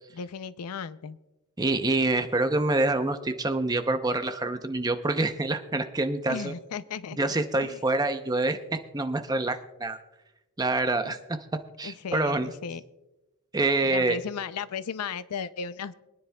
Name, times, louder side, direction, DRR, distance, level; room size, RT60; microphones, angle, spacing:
voice 1, 0.1-1.2 6.3-7.3 7.6-7.8 11.0-11.1 11.8-12.8 13.8-15.9, left 6 dB, 90° left, 15 dB, 0.5 m, -35 dB
voice 2, 1.6-6.5 7.2-8.6 8.9-10.0 10.6-11.2 11.8-12.5 13.5-14.2, right 2 dB, 15° right, 8 dB, 0.6 m, -26 dB
24.5 x 9.8 x 2.2 m, 1.0 s
head